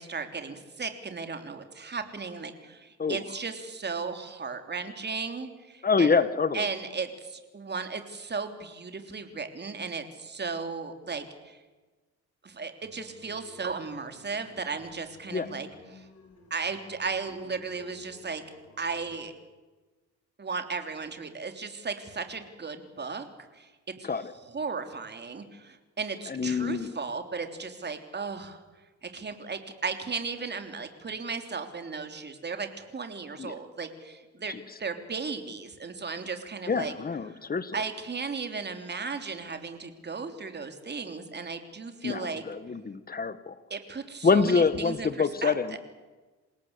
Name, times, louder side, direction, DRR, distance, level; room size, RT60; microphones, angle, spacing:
voice 1, 0.0-6.1 6.5-11.6 12.4-16.1 16.5-18.4 18.8-19.3 20.4-23.3 23.5-23.7 24.0-28.6 29.0-36.9 37.3-37.4 37.7-42.4 43.7-45.8, right 4 dB, 35° right, 7 dB, 3.4 m, -35 dB
voice 2, 5.8-6.7 15.3-15.5 24.0-24.3 26.3-26.9 33.4-33.5 34.5-34.6 36.7-37.8 42.0-43.5 44.2-45.8, left 5 dB, 30° left, 14 dB, 1.5 m, -26 dB
sound 1, 12.8-19.2, left 2 dB, 55° left, 7.0 m, -54 dB
28.0 x 17.5 x 8.2 m, 1.2 s
cardioid pair, 90°, 30 cm